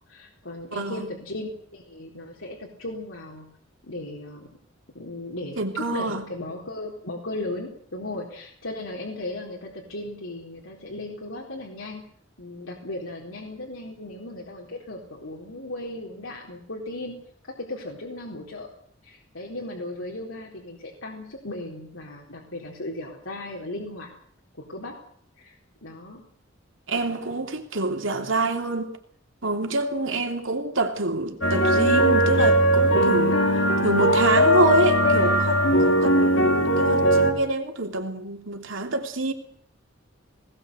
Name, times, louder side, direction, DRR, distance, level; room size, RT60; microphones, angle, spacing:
voice 1, 0.1-3.5 3.8-4.5 4.9-12.0 12.4-17.2 17.7-18.7 19.0-24.1 24.7-25.0 25.4-25.6 25.8-26.2, left 2 dB, 85° left, -1 dB, 4.0 m, -36 dB
voice 2, 0.7-1.1 5.6-6.2 26.9-29.0 29.4-39.3, right 2 dB, 75° right, 4 dB, 3.1 m, -26 dB
sound 1, 31.4-37.3, equal, 65° left, 3.5 m, -19 dB
20.0 x 19.5 x 8.0 m, 0.62 s
head